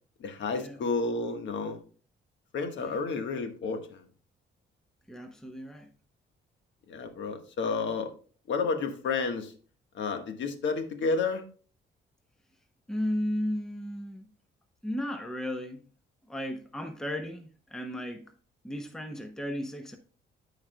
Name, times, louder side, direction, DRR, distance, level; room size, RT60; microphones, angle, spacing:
voice 1, 0.2-1.8 2.5-4.0 6.9-8.1 8.5-9.5 9.9-11.4, left 4 dB, 70° left, 1.4 m, -31 dB
voice 2, 5.1-5.9 12.9-14.3 14.8-15.8 16.3-18.3 18.6-20.0, equal, 5° left, 0.8 m, -35 dB
13.5 x 4.8 x 2.2 m
cardioid pair, 90°, 20 cm